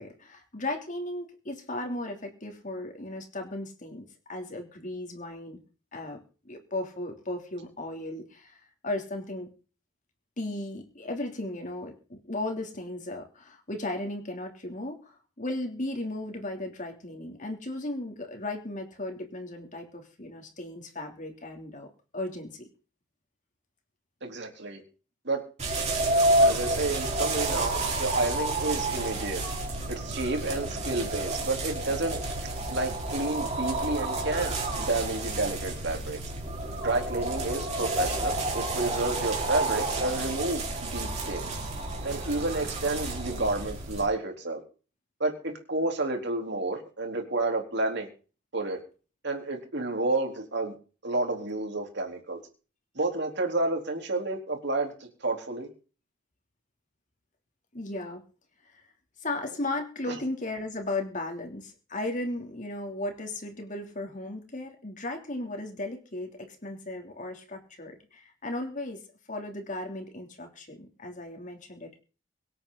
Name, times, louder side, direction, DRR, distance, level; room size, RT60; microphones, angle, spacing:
voice 1, 0.0-5.6 5.9-6.2 6.4-9.5 10.4-22.7 57.7-58.2 58.7-58.8 59.2-69.0 69.3-72.0, left 2 dB, 40° left, 3 dB, 3.2 m, -36 dB
voice 2, 24.2-24.8 25.2-25.4 26.4-29.4 29.9-32.2 32.7-36.2 36.8-41.5 42.0-44.6 45.2-48.1 48.5-48.8 49.2-50.7 51.0-52.4 53.0-55.7 60.1-60.2, right 2 dB, 60° right, 3 dB, 3.9 m, -30 dB
sound 1, 25.6-44.1, right 2 dB, 35° right, 4.7 m, -30 dB
24.5 x 8.9 x 4.1 m, 0.37 s
head